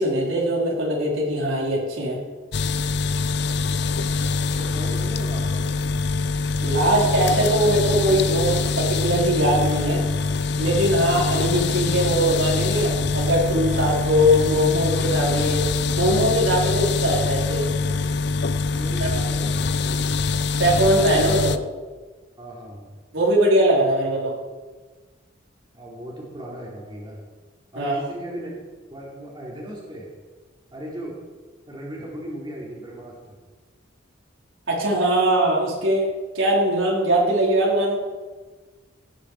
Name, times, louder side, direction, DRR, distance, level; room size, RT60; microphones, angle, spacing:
voice 1, 0.0-2.2 6.6-10.0 10.6-15.7 16.0-17.7 19.0-19.1 20.6-21.6 23.1-24.3 27.7-27.9 34.7-36.1 36.3-38.0, right 1 dB, 75° right, -4 dB, 4.5 m, -21 dB
sound 1, 2.5-21.6, left 4 dB, 55° left, 0.5 m, -24 dB
voice 2, 4.4-5.5 18.7-20.1 22.4-22.9 25.7-27.2 27.7-28.5 28.9-30.1 30.7-31.2 31.7-33.4, right 1 dB, 20° right, -5 dB, 3.5 m, -37 dB
18.0 x 9.6 x 5.0 m, 1.3 s
head